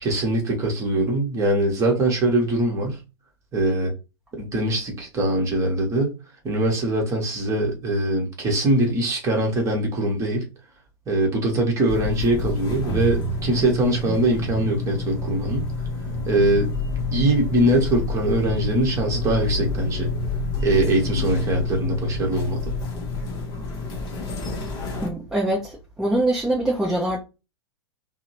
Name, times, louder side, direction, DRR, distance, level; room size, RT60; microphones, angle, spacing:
voice 1, 0.0-3.0 3.5-3.9 4.4-6.1 6.4-10.5 11.1-15.7 16.3-16.7 17.1-20.1 20.6-22.7, right 1 dB, 20° right, 1.0 m, -22 dB
sound 1, 11.9-25.1, left 2 dB, 30° left, 0.8 m, -28 dB
voice 2, 25.0-27.2, right 1 dB, 5° right, 0.6 m, -23 dB
2.7 x 2.1 x 2.8 m
figure-of-eight pair, 100°, 14 cm